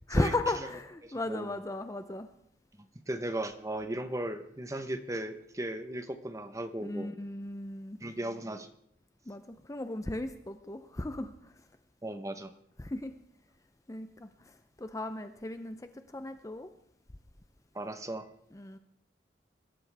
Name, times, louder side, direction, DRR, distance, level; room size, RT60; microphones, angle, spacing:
voice 1, 0.1-2.3 6.8-8.0 9.3-11.5 12.8-13.2 13.9-16.7 18.5-18.8, left 2 dB, 15° left, 9 dB, 0.6 m, -36 dB
voice 2, 1.0-1.5 2.8-7.1 8.0-8.7 12.0-12.5 17.7-18.3, right 1 dB, 15° right, 9 dB, 0.9 m, -36 dB
23.5 x 13.0 x 3.4 m, 0.69 s
head